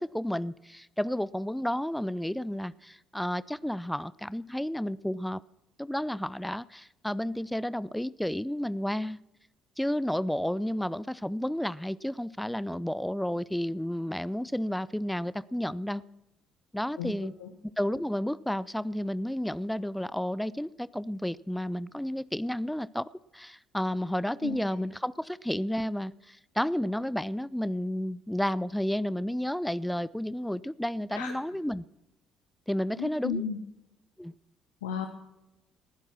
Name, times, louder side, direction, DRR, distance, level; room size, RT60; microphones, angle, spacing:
voice 1, 0.0-5.4 5.8-9.2 9.8-16.0 16.7-17.3 17.8-23.1 23.3-31.8 32.7-33.4 34.2-34.3, left 1 dB, 5° left, 19 dB, 0.5 m, -31 dB
voice 2, 33.0-33.6 34.8-35.1, left 7 dB, 80° left, 4 dB, 1.1 m, -33 dB
19.5 x 11.5 x 6.1 m, 0.93 s
hypercardioid pair, 50°, 0 cm